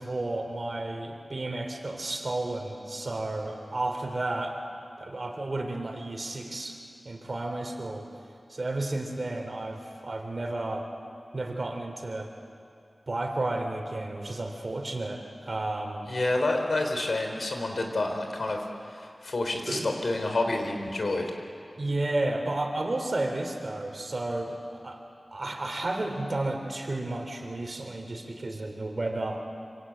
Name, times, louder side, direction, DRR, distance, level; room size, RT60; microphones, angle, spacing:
voice 1, 0.0-4.6 5.0-6.8 7.1-8.1 8.5-10.9 11.3-12.3 13.1-16.1 19.7-19.9 21.8-25.0 25.3-29.4, right 2 dB, 50° right, 3 dB, 3.6 m, -32 dB
voice 2, 16.1-18.7 18.9-21.3, left 2 dB, 75° left, 4 dB, 3.8 m, -28 dB
26.0 x 26.0 x 8.8 m, 2.6 s
wide cardioid pair, 85°, 0 cm